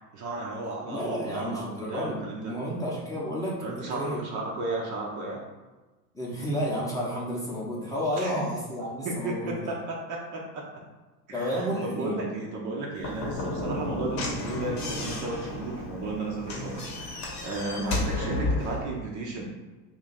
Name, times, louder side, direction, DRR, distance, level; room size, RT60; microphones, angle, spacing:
voice 1, 0.1-2.6 3.6-5.4 8.2-8.4 9.0-10.8 11.3-19.5, right 2 dB, 40° right, -1 dB, 0.6 m, -34 dB
voice 2, 0.9-4.2 6.1-9.8 11.3-12.2 16.5-16.7 17.7-18.0, equal, 5° left, -6 dB, 0.8 m, -31 dB
Slam / Knock, 13.0-18.8, left 2 dB, 35° left, 0.9 m, -32 dB
2.8 x 2.5 x 4.1 m, 1.2 s
hypercardioid pair, 100°, 50 cm